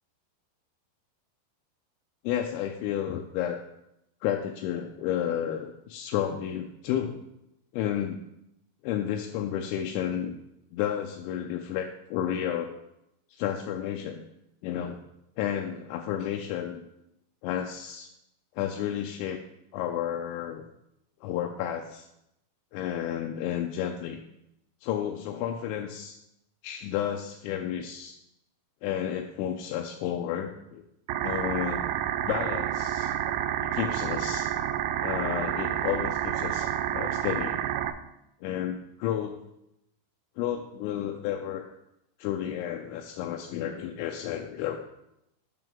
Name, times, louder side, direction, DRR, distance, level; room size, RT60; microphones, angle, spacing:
voice 1, 2.2-3.6 4.2-7.2 7.7-8.2 8.8-10.3 10.7-12.8 13.3-14.2 14.6-15.0 15.4-16.8 17.4-18.1 18.6-19.4 19.7-20.6 21.2-22.1 22.7-24.2 24.8-26.2 26.6-28.2 28.8-30.8 31.2-31.9 32.2-33.1 33.7-34.5 35.0-37.6 38.4-39.3 40.4-41.7 42.2-44.8, left 10 dB, 85° left, 3 dB, 2.9 m, -31 dB
sound 1, 31.1-37.9, right 11 dB, 85° right, 2.7 m, -29 dB
9.0 x 6.1 x 3.5 m, 0.83 s
omnidirectional pair, 5.3 m